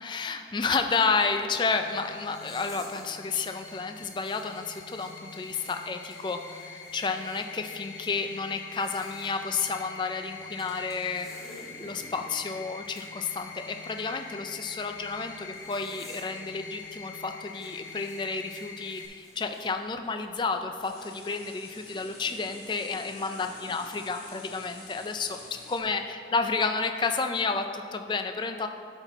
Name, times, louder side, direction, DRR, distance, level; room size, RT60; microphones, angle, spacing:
voice 1, 0.0-11.3 11.8-28.7, left 4 dB, 25° left, 6 dB, 0.3 m, -31 dB
sound 1, 1.8-19.1, left 4 dB, 80° left, 0.8 m, -45 dB
sound 2, 2.3-3.1 3.4-7.5 8.6-9.3 10.6-12.3 12.9-13.1 15.5-16.4 16.7-16.9 17.5-19.7, equal, ahead, 1.5 m, -51 dB
sound 3, 8.9-17.1 18.2-18.3 19.1-25.8, left 3 dB, 55° left, 1.4 m, -52 dB
11.5 x 4.4 x 3.9 m, 2.4 s
head